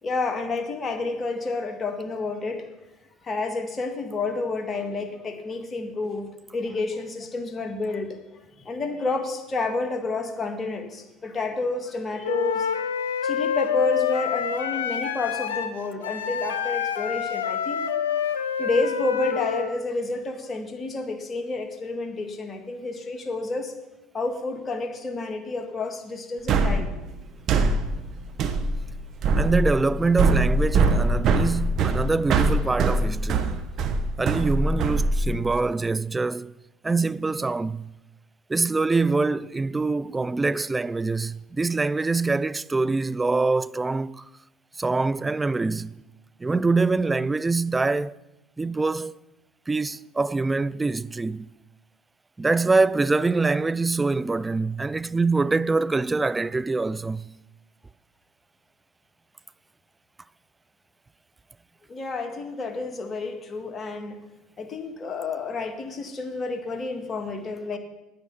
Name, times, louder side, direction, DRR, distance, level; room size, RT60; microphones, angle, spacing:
voice 1, 0.0-2.7 3.2-8.2 8.6-17.8 18.6-23.7 24.1-26.9 27.5-27.7 61.9-64.2 64.6-67.8, left 3 dB, 30° left, 1.7 m, -30 dB
Wind instrument woodwind instrument, 12.2-19.7, left 8 dB, 80° left, 0.6 m, -27 dB
sound 1, 26.5-35.6, right 3 dB, 50° right, 1.0 m, -23 dB
voice 2, 29.3-33.6 34.2-36.5 36.8-37.9 38.5-44.3 44.8-46.0 46.4-48.2 48.6-49.2 49.7-51.5 52.4-57.3, right 3 dB, 15° right, 0.3 m, -24 dB
9.4 x 9.1 x 5.7 m
hypercardioid pair, 70°, 0 cm